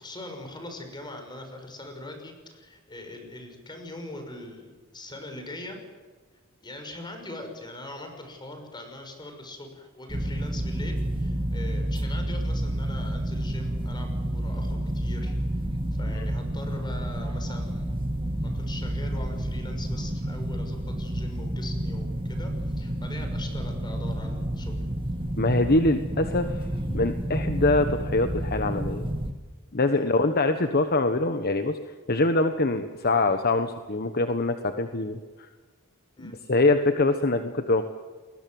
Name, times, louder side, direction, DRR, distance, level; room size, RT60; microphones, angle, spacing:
voice 1, 0.0-5.8 6.6-15.6 16.0-18.0 18.4-22.5 22.8-24.7 29.9-30.1 36.2-36.4, left 1 dB, 20° left, 5 dB, 6.1 m, -41 dB
sound 1, 10.1-29.3, right 1 dB, 25° right, 2.0 m, -30 dB
voice 2, 25.4-26.6 26.9-29.1 29.7-31.8 32.1-35.2 36.2-37.9, left 2 dB, 50° left, 8 dB, 1.3 m, -24 dB
30.0 x 21.0 x 7.9 m, 1.4 s
head